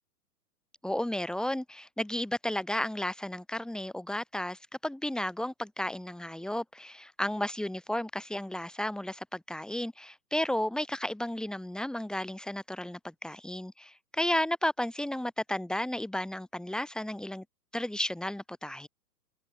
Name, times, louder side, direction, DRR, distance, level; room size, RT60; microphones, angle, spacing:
voice 1, 0.8-17.4 17.7-18.9, left 1 dB, ahead, 1.5 m, -33 dB
figure-of-eight pair, 115°, 48 cm